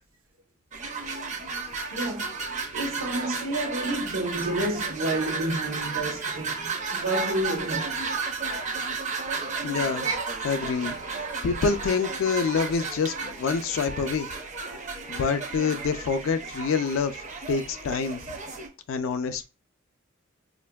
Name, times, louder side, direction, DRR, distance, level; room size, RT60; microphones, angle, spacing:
sound 1, 0.7-18.7, right 4 dB, 35° right, 0.5 m, -33 dB
voice 1, 1.9-2.3 2.7-7.9, right 1 dB, 80° right, 0.8 m, -30 dB
voice 2, 9.6-10.1 10.4-11.0 11.4-14.3 15.1-18.2 18.9-19.4, left 5 dB, 70° left, 0.4 m, -27 dB
5.0 x 2.5 x 2.2 m
head